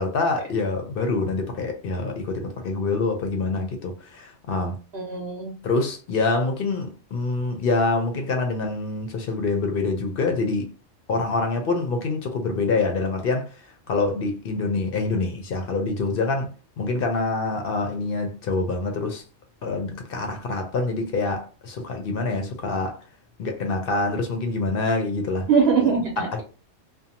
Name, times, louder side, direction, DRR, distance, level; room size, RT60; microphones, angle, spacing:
voice 1, 0.0-4.8 5.6-10.7 11.1-16.5 16.8-19.2 19.6-23.0 23.4-25.5 26.3-26.4, left 3 dB, 60° left, 0.6 m, -26 dB
voice 2, 4.9-5.5 25.4-26.4, right 5 dB, 55° right, 0.9 m, -22 dB
2.6 x 2.1 x 2.7 m
omnidirectional pair, 1.3 m